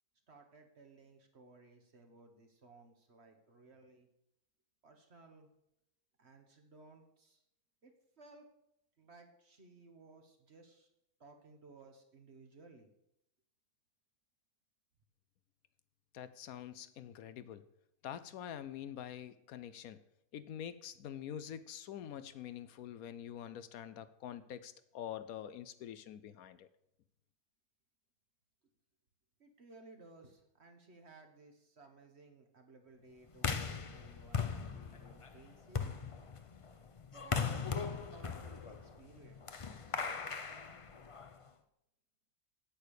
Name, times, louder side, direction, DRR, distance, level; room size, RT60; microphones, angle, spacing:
voice 1, 0.3-4.1 4.8-5.5 6.2-7.4 7.8-7.9 8.2-8.4 9.0-10.9 11.2-12.9 29.4-35.9 37.1-39.7 40.1-40.2, right 3 dB, 45° right, 5 dB, 1.6 m, -59 dB
voice 2, 16.1-17.7 18.0-20.0 20.3-26.7, left 10 dB, 75° left, 13 dB, 1.0 m, -46 dB
sound 1, 33.3-41.5, left 5 dB, 50° left, 0.4 m, -39 dB
8.8 x 8.5 x 6.6 m, 0.80 s
omnidirectional pair, 1.6 m